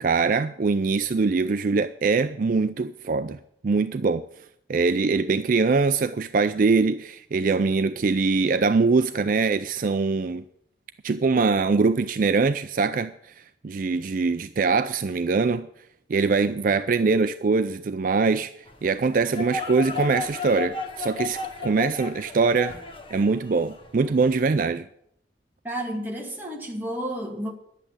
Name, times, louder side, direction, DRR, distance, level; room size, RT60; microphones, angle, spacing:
voice 1, 0.0-3.4 3.6-4.2 4.7-10.4 11.0-15.7 16.1-18.5 18.8-22.8 23.1-24.9, right 4 dB, 50° right, 0.4 m, -23 dB
sound 1, 18.7-24.5, left 4 dB, 30° left, 1.4 m, -35 dB
voice 2, 25.6-27.5, right 1 dB, 10° right, 2.2 m, -31 dB
11.0 x 8.3 x 8.7 m
head